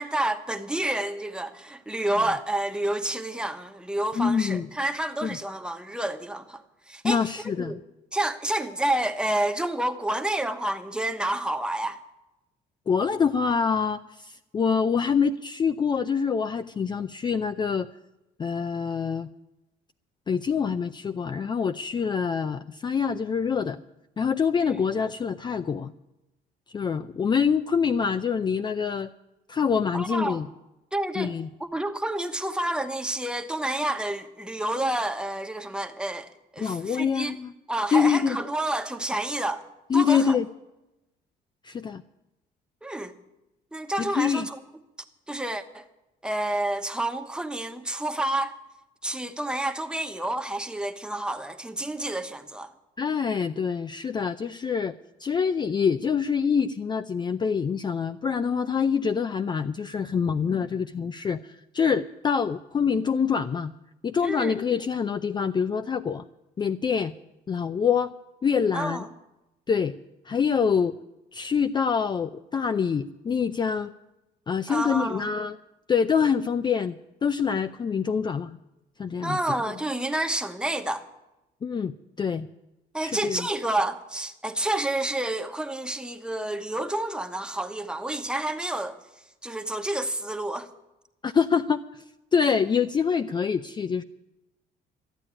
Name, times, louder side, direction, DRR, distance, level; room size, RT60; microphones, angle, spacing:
voice 1, 0.0-6.6 6.9-7.2 7.6-7.8 8.1-12.0 24.6-24.8 29.9-30.4 30.9-31.3 31.6-37.4 37.7-39.6 39.9-40.4 42.8-43.1 43.7-44.6 45.3-45.9 46.2-48.6 49.0-52.7 64.2-64.6 68.7-69.1 74.7-75.3 79.2-81.1 82.9-89.0 89.4-90.7, right 1 dB, 5° right, 1.1 m, -29 dB
voice 2, 4.2-4.7 5.2-5.4 7.0-7.7 12.9-17.9 18.4-19.3 20.3-23.8 24.2-25.9 26.7-29.1 29.5-30.5 31.2-31.5 36.6-37.5 37.9-38.4 39.9-40.5 41.6-42.0 44.0-44.5 53.0-54.9 55.2-63.7 64.0-66.2 66.6-67.1 67.5-68.1 68.4-69.0 69.7-70.0 70.3-70.9 71.3-73.9 74.5-75.6 75.9-77.0 77.2-78.6 79.0-79.4 81.6-82.5 83.0-83.5 91.2-91.8 92.3-94.0, left 6 dB, 25° left, 0.4 m, -25 dB
13.5 x 8.8 x 9.8 m
cardioid pair, 110°, 17 cm